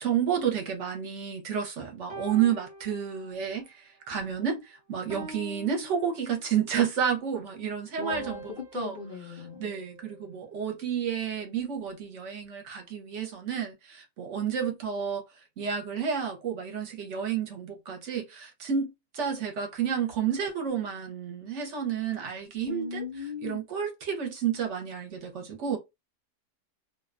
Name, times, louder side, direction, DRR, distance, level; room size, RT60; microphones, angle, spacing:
voice 1, 0.0-8.9 9.6-23.0 23.4-25.8, right 8 dB, 60° right, 0.9 m, -31 dB
sound 1, 2.1-3.6 4.1-4.4 5.1-6.8 8.1-10.5, right 2 dB, 35° right, 0.8 m, -45 dB
voice 2, 8.0-9.7 22.7-23.6, left 5 dB, 70° left, 0.4 m, -37 dB
2.5 x 2.1 x 2.4 m
omnidirectional pair, 1.5 m